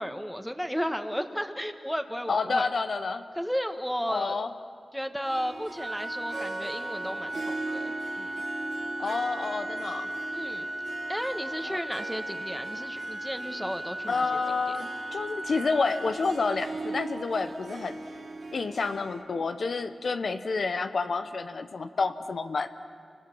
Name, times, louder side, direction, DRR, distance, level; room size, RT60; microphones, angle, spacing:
voice 1, 0.0-2.7 3.4-4.3 4.9-8.4 10.3-10.7 11.1-14.2 14.7-14.8, equal, ahead, 7 dB, 1.6 m, -34 dB
voice 2, 2.3-3.2 4.1-4.5 9.0-10.1 11.6-11.8 14.1-18.0 18.5-22.7, left 4 dB, 70° left, 9 dB, 0.8 m, -29 dB
Harp, 5.2-19.2, right 3 dB, 75° right, 2.3 m, -40 dB
Organ, 5.8-16.8, right 1 dB, 35° right, 0.9 m, -37 dB
29.0 x 25.0 x 6.2 m, 2.2 s
cardioid pair, 55°, 0 cm